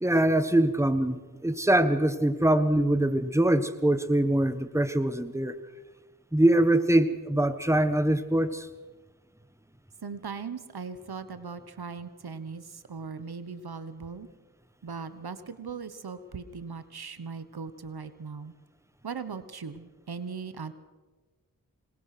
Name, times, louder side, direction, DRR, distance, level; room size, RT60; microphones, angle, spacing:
voice 1, 0.0-5.6 6.3-8.7, right 1 dB, 10° right, 11 dB, 1.4 m, -23 dB
voice 2, 10.0-14.3 14.8-18.5 19.0-20.7, right 5 dB, 85° right, 12 dB, 1.2 m, -39 dB
25.5 x 19.5 x 6.0 m, 1.3 s
wide cardioid pair, 45°, 37 cm